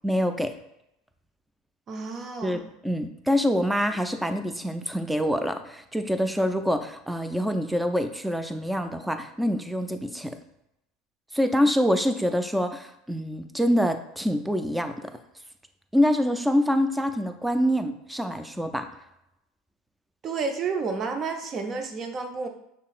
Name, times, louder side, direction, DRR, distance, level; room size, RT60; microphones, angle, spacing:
voice 1, 0.0-0.5 2.4-10.4 11.3-15.1 15.9-18.9, equal, 5° right, 8 dB, 0.5 m, -25 dB
voice 2, 1.9-2.6 20.2-22.5, right 4 dB, 40° right, 5 dB, 0.7 m, -30 dB
5.6 x 3.7 x 2.5 m, 0.82 s
hypercardioid pair, 90°, 0 cm